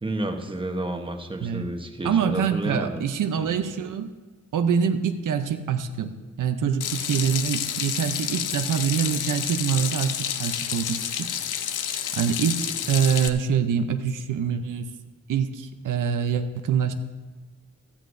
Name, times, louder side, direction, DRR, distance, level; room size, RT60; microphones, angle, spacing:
voice 1, 0.0-3.0 3.4-3.5, right 1 dB, 15° right, 5 dB, 1.0 m, -30 dB
voice 2, 2.0-4.1 4.5-11.3 12.1-14.9 15.3-16.9, right 7 dB, 90° right, 7 dB, 0.7 m, -25 dB
Water tap faucet / Sink (filling or washing), 6.8-13.3, left 9 dB, 80° left, 0.6 m, -29 dB
15.5 x 13.5 x 2.6 m, 1.2 s
wide cardioid pair, 125°, 30 cm